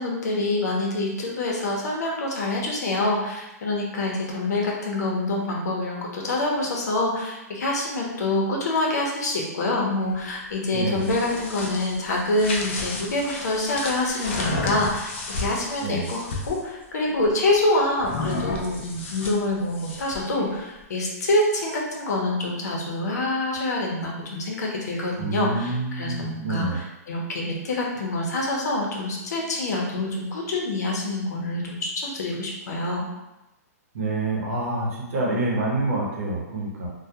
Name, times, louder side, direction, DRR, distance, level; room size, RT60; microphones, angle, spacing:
voice 1, 0.0-33.1, left 2 dB, 85° left, -2 dB, 0.7 m, -26 dB
voice 2, 10.7-11.1 15.8-16.1 25.2-26.8 33.9-36.9, right 2 dB, 55° right, -3 dB, 0.8 m, -27 dB
sound 1, 10.8-16.6 18.0-20.3, left 2 dB, 45° left, 0.4 m, -32 dB
2.2 x 2.2 x 2.7 m, 0.99 s
hypercardioid pair, 170°, 9 cm